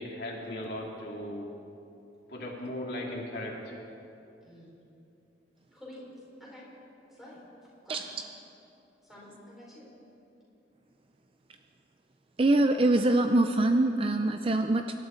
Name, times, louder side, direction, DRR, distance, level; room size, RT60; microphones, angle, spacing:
voice 1, 0.0-1.5 2.3-3.8, left 1 dB, 55° left, -1 dB, 2.4 m, -37 dB
voice 2, 5.7-6.1 6.4-6.6 7.1-7.4 7.8-8.1 9.0-9.9, left 1 dB, ahead, -6 dB, 4.6 m, -49 dB
voice 3, 12.4-15.0, right 2 dB, 30° right, 7 dB, 0.4 m, -24 dB
25.5 x 12.0 x 4.4 m, 2.8 s
head